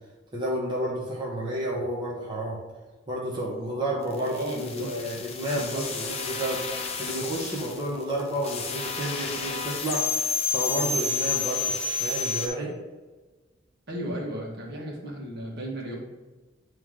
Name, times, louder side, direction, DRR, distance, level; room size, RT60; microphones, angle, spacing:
voice 1, 0.3-2.6 3.1-11.7 12.0-12.7, right 1 dB, 25° right, -4 dB, 1.0 m, -31 dB
sound 1, 4.0-12.5, left 4 dB, 35° left, 0.7 m, -30 dB
voice 2, 4.1-4.9 5.5-5.9 13.9-16.0, right 1 dB, 60° right, -2 dB, 1.5 m, -34 dB
9.0 x 3.1 x 3.7 m, 1.3 s
head